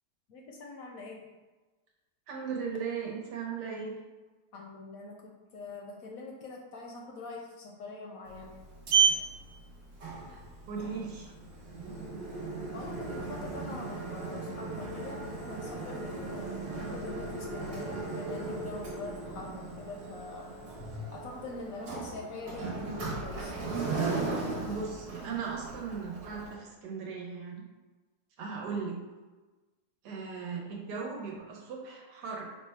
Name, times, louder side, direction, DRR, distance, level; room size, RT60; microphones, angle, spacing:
voice 1, 0.3-1.2 4.5-8.5 12.7-20.6 21.1-23.5, left 3 dB, 70° left, 0 dB, 0.9 m, -43 dB
voice 2, 2.3-3.9 10.3-10.4 10.7-11.3 24.6-27.6 28.4-29.0 30.0-32.5, right 5 dB, 85° right, -1 dB, 1.4 m, -37 dB
Sliding door, 8.3-26.5, right 5 dB, 65° right, 1.4 m, -35 dB
4.0 x 2.2 x 4.3 m, 1.2 s
omnidirectional pair, 1.8 m